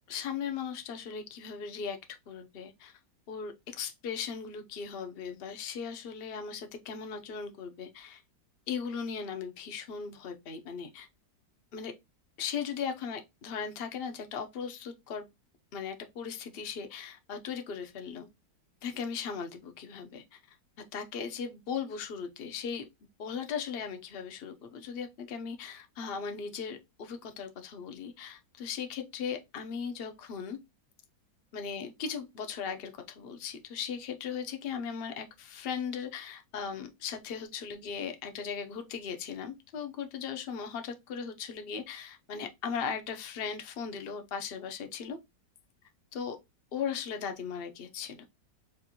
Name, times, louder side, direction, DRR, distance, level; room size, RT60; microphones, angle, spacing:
voice 1, 0.1-2.0 2.3-2.9 3.3-8.2 8.7-11.1 11.7-11.9 12.4-15.3 15.7-18.3 18.8-20.4 20.9-22.9 23.2-30.6 31.5-45.2 46.1-46.4 46.7-48.3, left 6 dB, 50° left, 0.7 m, -38 dB
5.1 x 2.5 x 2.8 m
omnidirectional pair, 1.9 m